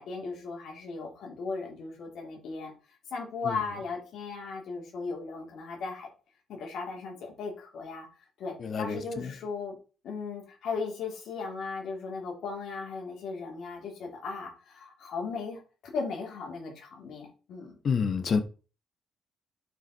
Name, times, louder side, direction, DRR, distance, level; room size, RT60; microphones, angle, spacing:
voice 1, 0.0-2.7 3.1-6.1 6.5-8.1 8.4-9.7 10.0-15.6 15.9-17.8, left 4 dB, 75° left, 3.5 m, -37 dB
voice 2, 8.6-9.3 17.8-18.4, left 5 dB, 50° left, 1.4 m, -28 dB
8.7 x 5.0 x 4.2 m
cardioid pair, 90°, 0 cm